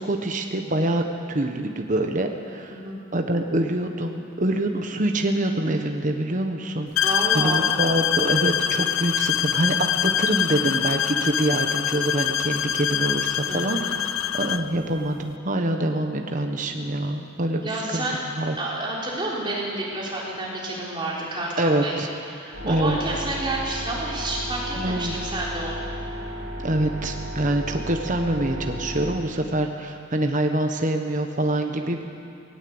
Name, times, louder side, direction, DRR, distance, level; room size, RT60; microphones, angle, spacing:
voice 1, 0.0-2.8 3.1-7.1 7.3-13.9 14.4-18.0 18.3-18.5 21.6-22.1 22.6-23.0 24.8-25.2 26.6-32.0, right 1 dB, 40° right, 4 dB, 1.2 m, -25 dB
sound 1, 7.0-14.7, left 9 dB, 70° left, 0.6 m, -24 dB
voice 2, 7.0-7.6 13.4-13.9 17.6-18.2 18.6-21.9 22.3-25.9, right 2 dB, 25° right, -5 dB, 4.2 m, -29 dB
sound 2, 22.5-29.2, equal, 65° right, 4.0 m, -33 dB
18.5 x 18.5 x 7.9 m, 2.6 s
head